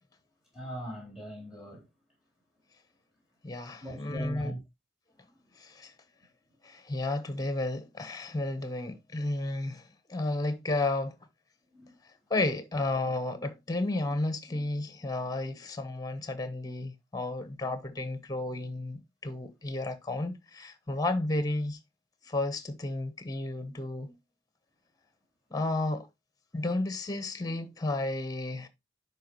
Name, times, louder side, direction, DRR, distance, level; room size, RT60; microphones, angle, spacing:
voice 1, 0.5-1.9 3.8-4.6 11.7-11.9, equal, 5° right, 3.8 m, -40 dB
voice 2, 3.4-4.5 5.6-5.9 6.6-9.8 10.1-11.1 12.3-21.8 22.3-24.2 25.5-26.1 26.5-28.7, left 2 dB, 20° left, 1.1 m, -32 dB
10.5 x 4.8 x 3.1 m
head